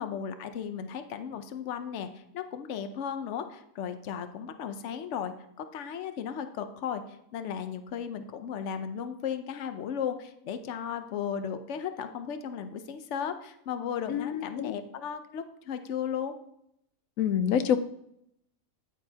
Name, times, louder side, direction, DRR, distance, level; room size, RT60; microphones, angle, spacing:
voice 1, 0.0-7.0 7.3-16.3, left 8 dB, 65° left, 9 dB, 1.0 m, -35 dB
voice 2, 14.1-14.7 17.2-17.8, left 9 dB, 90° left, 10 dB, 1.1 m, -26 dB
9.7 x 8.8 x 2.8 m, 0.74 s
omnidirectional pair, 1.4 m